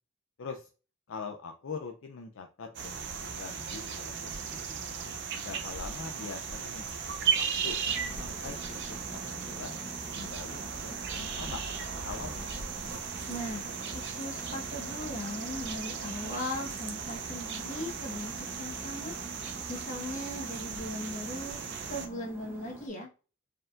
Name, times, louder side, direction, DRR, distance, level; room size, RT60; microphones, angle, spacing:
voice 1, 0.4-0.7 1.1-4.9 5.3-7.8 8.2-9.8 10.1-12.5, left 5 dB, 60° left, 3 dB, 0.5 m, -43 dB
sound 1, 2.7-22.1, right 6 dB, 55° right, 0.6 m, -36 dB
sound 2, 7.8-22.9, right 1 dB, 10° right, 0.9 m, -48 dB
voice 2, 13.3-19.1 19.7-21.6 21.9-23.1, left 1 dB, 35° left, 0 dB, 1.3 m, -38 dB
4.5 x 3.6 x 2.5 m, 0.34 s
head